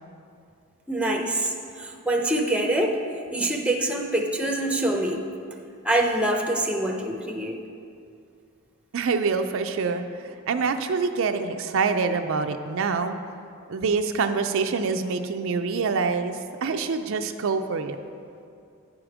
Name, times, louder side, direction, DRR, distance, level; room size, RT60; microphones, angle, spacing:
voice 1, 0.9-3.0 3.3-5.2 5.8-7.6, right 1 dB, 5° right, 2 dB, 0.6 m, -25 dB
voice 2, 8.9-13.2 13.7-18.0, right 4 dB, 60° right, 7 dB, 0.4 m, -26 dB
9.5 x 5.0 x 6.0 m, 2.5 s
head